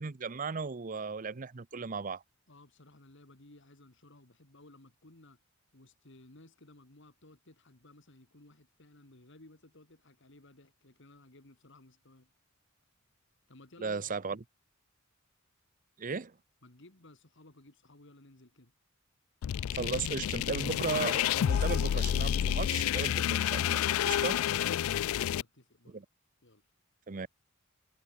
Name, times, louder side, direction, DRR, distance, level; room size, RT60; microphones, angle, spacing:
voice 1, 0.0-2.2 13.8-14.4 16.0-16.3 19.7-24.4 25.9-26.0 27.1-27.3, right 4 dB, 40° right, 0.7 m, -36 dB
voice 2, 2.5-5.4 5.7-12.3 13.5-14.4 16.6-18.7 23.9-26.0 26.4-26.7, left 2 dB, 60° left, 2.5 m, -58 dB
sound 1, 19.4-25.4, left 10 dB, 80° left, 0.3 m, -29 dB
head